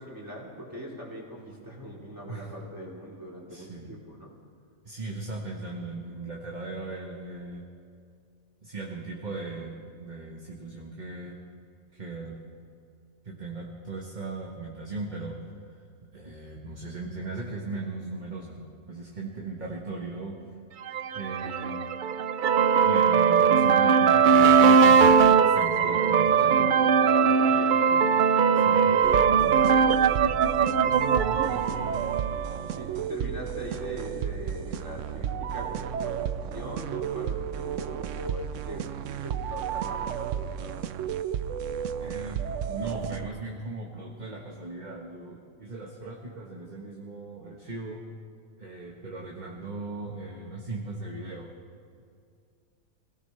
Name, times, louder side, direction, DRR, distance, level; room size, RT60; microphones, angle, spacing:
voice 1, 0.0-4.3 25.8-30.5 31.0-31.8 32.7-40.8, equal, 15° right, -4 dB, 3.4 m, -41 dB
voice 2, 3.5-4.0 4.8-7.6 8.6-11.4 11.9-12.3 13.2-15.4 16.1-20.4 21.1-21.9 22.8-26.7 28.5-28.9 31.2-32.0 33.2-33.3 42.0-48.0 48.6-51.5, right 3 dB, 35° right, -1 dB, 1.4 m, -38 dB
sound 1, 20.9-32.6, right 6 dB, 85° right, 0.4 m, -20 dB
sound 2, 29.0-43.3, right 9 dB, 70° right, 0.9 m, -33 dB
26.0 x 17.0 x 3.3 m, 2.3 s
omnidirectional pair, 1.4 m